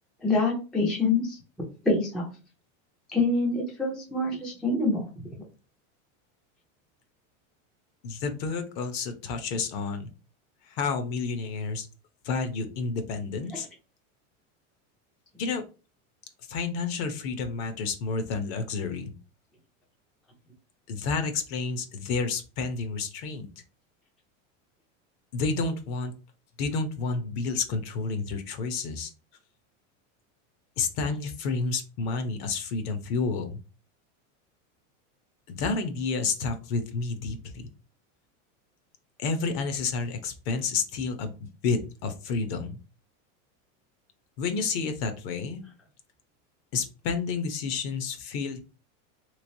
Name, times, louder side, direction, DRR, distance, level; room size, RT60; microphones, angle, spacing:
voice 1, 0.2-1.4 1.8-2.3 3.1-5.1 13.5-13.6, left 3 dB, ahead, -2 dB, 0.4 m, -26 dB
voice 2, 8.0-10.1 10.7-11.9 12.2-13.7 15.4-15.6 16.5-19.1 20.9-23.5 25.3-26.1 26.6-29.1 30.8-33.6 35.5-37.7 39.2-42.8 44.4-45.6 46.7-48.6, left 4 dB, 50° left, 8 dB, 0.7 m, -30 dB
3.3 x 3.1 x 2.6 m, 0.33 s
supercardioid pair, 160°, 38 cm